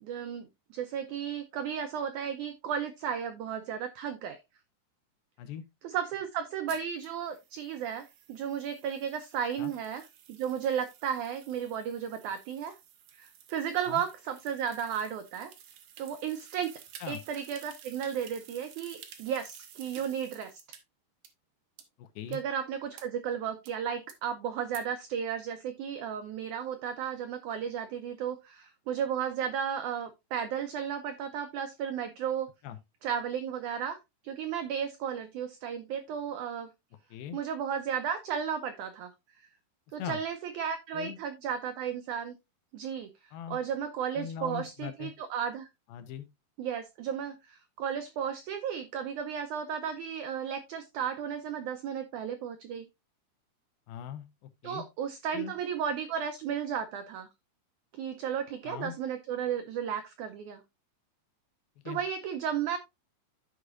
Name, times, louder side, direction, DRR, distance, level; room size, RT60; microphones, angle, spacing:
voice 1, 0.0-4.4 5.8-10.0 10.3-12.8 13.1-15.5 16.0-16.7 17.1-20.5 22.3-32.5 33.0-34.0 34.2-36.7 37.3-39.1 39.9-42.3 42.7-43.1 43.5-45.7 46.6-52.9 54.6-57.3 57.9-60.6 61.8-62.8, right 8 dB, 90° right, 1.7 m, -34 dB
sound 1, 6.7-20.8 21.2-21.3 21.8-21.9 22.3-22.4 23.0-23.1 23.7-23.8 24.1-24.2 24.7-24.8, right 9 dB, 70° right, 2.2 m, -53 dB
voice 2, 22.0-22.4 32.6-32.8 37.1-37.4 40.0-40.2 40.9-41.2 43.3-43.6 44.2-45.1 45.9-46.3 53.9-54.3 54.6-54.9 55.3-55.5 58.6-58.9 61.8-62.0, left 9 dB, 85° left, 2.7 m, -40 dB
13.5 x 4.9 x 2.4 m
omnidirectional pair, 4.3 m